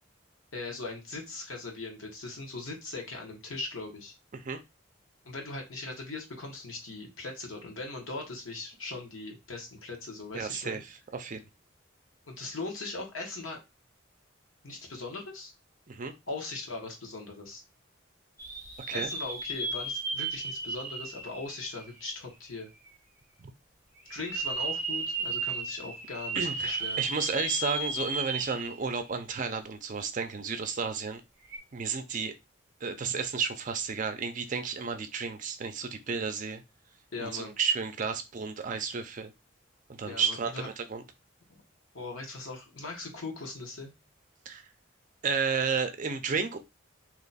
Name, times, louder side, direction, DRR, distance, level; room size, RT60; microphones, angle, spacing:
voice 1, 0.5-4.1 5.2-10.8 12.3-13.6 14.6-15.5 16.3-17.6 18.9-22.7 24.1-27.0 37.1-37.5 40.0-40.7 41.5-41.6 41.9-43.9, left 3 dB, 80° left, 1 dB, 1.2 m, -39 dB
voice 2, 10.3-11.4 15.9-16.1 18.9-19.1 23.4-23.5 26.3-31.2 31.7-32.3 32.8-36.6 37.2-39.3 39.9-41.0 44.5-44.6 45.2-46.6, right 5 dB, 40° right, 8 dB, 0.4 m, -32 dB
sound 1, 18.4-22.3 22.9-23.0 24.0-29.0 29.3-29.4 31.4-31.6, right 3 dB, 15° right, 0.9 m, -34 dB
2.9 x 2.3 x 4.0 m, 0.23 s
head